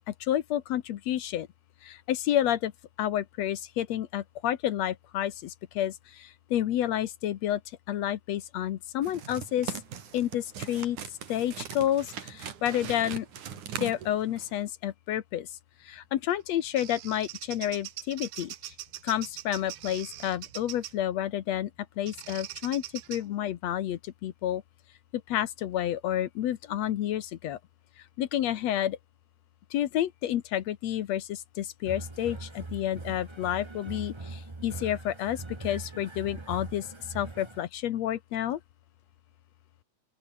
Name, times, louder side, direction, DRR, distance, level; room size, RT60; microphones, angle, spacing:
voice 1, 0.1-1.5 1.8-2.7 3.0-7.6 7.9-9.7 10.1-11.0 11.3-13.3 13.8-15.5 15.8-18.7 19.0-21.7 22.0-22.8 23.1-24.6 25.3-27.6 28.2-29.0 29.7-36.9 37.1-38.6, left 11 dB, 65° left, 2.1 m, -30 dB
sound 1, 9.0-14.6, right 8 dB, 85° right, 3.9 m, -40 dB
Bird vocalization bird call bird song, 16.3-21.0 22.1-23.2, right 13 dB, 65° right, 1.5 m, -42 dB
sound 2, 31.8-37.6, right 2 dB, 45° right, 0.3 m, -41 dB
open air
omnidirectional pair, 3.5 m